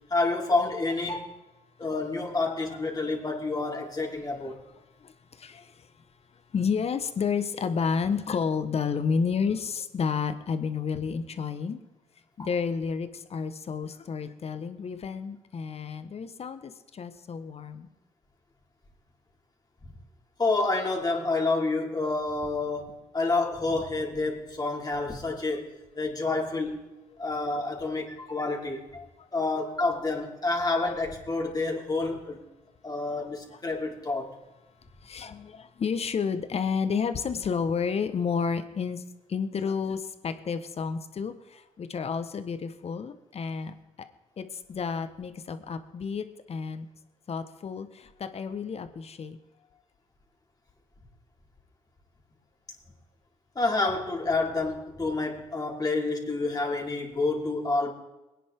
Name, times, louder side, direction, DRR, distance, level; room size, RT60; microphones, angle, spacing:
voice 1, 0.1-1.4 1.8-4.6 12.4-12.5 19.8-19.9 20.4-26.8 27.2-29.1 29.3-32.4 32.8-34.3 53.5-57.9, left 3 dB, 30° left, -1 dB, 4.4 m, -29 dB
voice 2, 5.4-5.7 6.5-11.8 12.4-17.9 33.0-33.1 35.0-39.0 39.3-43.7 44.4-46.9 47.3-49.4, left 6 dB, 50° left, 10 dB, 1.5 m, -31 dB
22.5 x 10.0 x 3.9 m, 1.1 s
hypercardioid pair, 50°, 14 cm